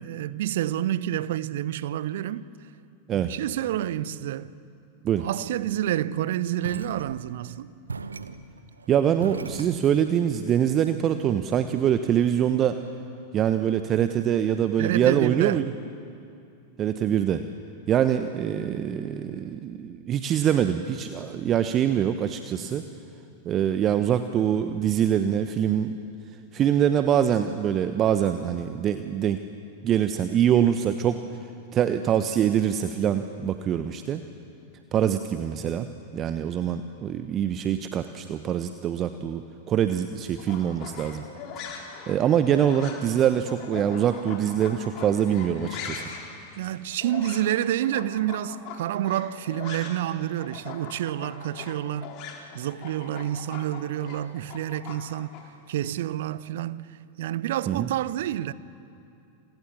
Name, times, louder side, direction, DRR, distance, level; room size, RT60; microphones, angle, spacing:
voice 1, 0.0-2.5 3.1-4.5 5.2-7.7 14.8-15.7 46.6-52.1 52.5-55.3 55.7-58.5, right 12 dB, 55° right, 0.9 m, -28 dB
sound 1, 6.6-7.5 7.9-10.3, right 4 dB, 75° right, 1.2 m, -37 dB
voice 2, 8.9-12.8 13.3-15.6 16.8-17.4 17.9-22.8 23.4-25.9 26.5-29.4 29.8-31.2 31.7-34.2 34.9-35.9 36.1-39.4 39.7-41.2 42.1-46.0 57.7-57.9, right 9 dB, 30° right, 1.1 m, -24 dB
sound 2, 40.4-50.1 50.4-55.4, left 6 dB, 40° left, 4.4 m, -41 dB
28.5 x 28.0 x 7.2 m
figure-of-eight pair, 90°, 0 cm